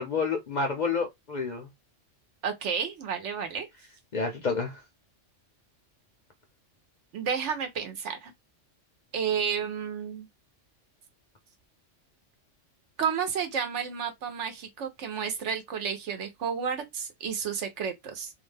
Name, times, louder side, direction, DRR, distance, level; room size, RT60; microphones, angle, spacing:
voice 1, 0.0-1.7 4.1-4.8, left 4 dB, 50° left, 0.6 m, -29 dB
voice 2, 2.4-3.7 7.1-8.3 9.1-10.3 13.0-18.3, right 7 dB, 70° right, 1.1 m, -31 dB
2.6 x 2.2 x 3.2 m
omnidirectional pair, 1.3 m